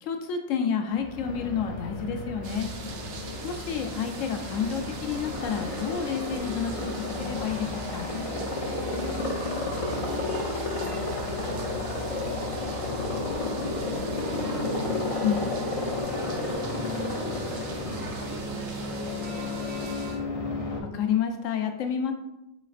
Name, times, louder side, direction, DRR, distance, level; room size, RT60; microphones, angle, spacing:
voice 1, 0.0-2.7 3.4-6.9 7.2-8.1 15.2-15.4 20.8-22.1, left 7 dB, 75° left, 5 dB, 0.9 m, -29 dB
Aircraft, 0.9-20.8, left 2 dB, 55° left, 0.3 m, -32 dB
sound 1, 2.3-20.2, right 1 dB, 40° right, 1.1 m, -48 dB
sound 2, 2.4-20.2, right 5 dB, 65° right, 0.7 m, -44 dB
voice 2, 8.7-11.0 11.2-14.5 15.7-17.4 17.7-20.0, equal, 90° right, -3 dB, 1.6 m, -46 dB
4.1 x 3.9 x 2.4 m, 0.92 s
omnidirectional pair, 1.4 m